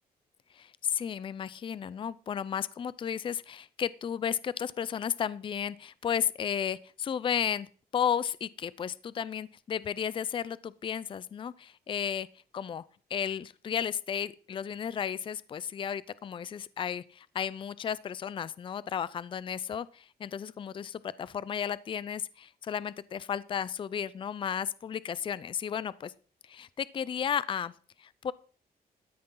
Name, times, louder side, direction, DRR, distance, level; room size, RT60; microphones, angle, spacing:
voice 1, 0.5-7.7 7.9-12.3 12.5-12.8 13.1-26.1 26.5-27.7 28.0-28.3, left 8 dB, 30° left, 19 dB, 0.4 m, -33 dB
13.0 x 9.7 x 3.8 m, 0.40 s
wide cardioid pair, 150°, 16 cm